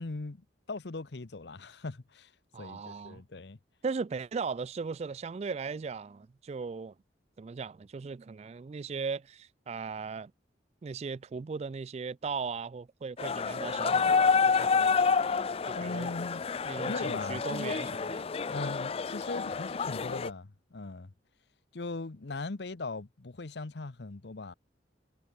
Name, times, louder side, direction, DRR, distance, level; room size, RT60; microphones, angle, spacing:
voice 1, 0.0-2.3 2.6-3.6 15.7-16.4 16.8-17.8 18.5-21.1 21.7-24.5, left 3 dB, 65° left, 0.8 m, -39 dB
voice 2, 2.5-3.2 3.8-6.9 7.4-10.3 10.8-15.1 15.6-16.1 16.6-18.3, right 5 dB, 35° right, 0.3 m, -38 dB
sound 1, 13.2-20.3, left 5 dB, 30° left, 0.4 m, -29 dB
head